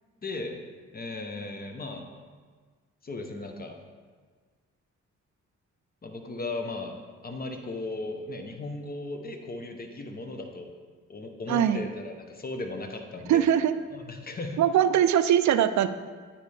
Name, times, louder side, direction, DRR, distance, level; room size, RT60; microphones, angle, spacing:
voice 1, 0.2-0.6 0.9-2.1 3.0-3.8 6.0-7.0 7.2-10.7 11.1-13.5 13.9-14.6, left 2 dB, 30° left, 4 dB, 0.8 m, -36 dB
voice 2, 11.5-11.8 13.3-13.7 14.6-15.9, right 10 dB, 65° right, 12 dB, 0.4 m, -21 dB
9.0 x 4.2 x 3.3 m, 1.5 s
cardioid pair, 75°, 31 cm